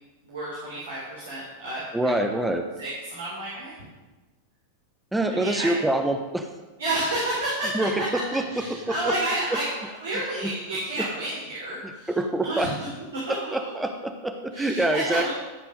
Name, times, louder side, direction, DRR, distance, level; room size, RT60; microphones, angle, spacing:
voice 1, 0.2-2.4 2.8-3.8 5.3-5.7 6.8-8.1 8.5-12.2 12.4-12.9 13.3-13.7 14.5-15.3, right 1 dB, 65° right, -6 dB, 3.5 m, -31 dB
voice 2, 1.9-2.7 5.1-6.5 7.7-9.2 10.4-10.5 12.1-12.8 13.3-15.3, right 1 dB, 5° right, 5 dB, 1.0 m, -26 dB
13.5 x 7.3 x 5.2 m, 1.2 s
figure-of-eight pair, 90°, 0 cm